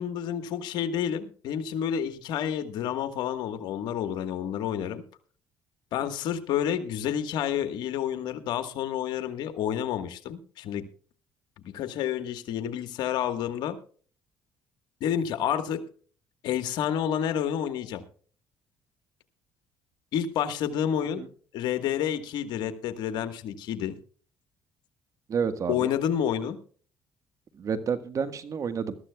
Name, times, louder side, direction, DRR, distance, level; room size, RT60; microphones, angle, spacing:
voice 1, 0.0-5.0 5.9-10.8 11.6-13.8 15.0-15.8 16.4-18.0 20.1-21.2 21.5-24.0 25.7-26.6, left 9 dB, 75° left, 9 dB, 1.5 m, -29 dB
voice 2, 25.3-25.9 27.6-29.0, right 6 dB, 50° right, 11 dB, 1.5 m, -29 dB
21.0 x 13.5 x 2.3 m, 0.43 s
cardioid pair, 85°, 7 cm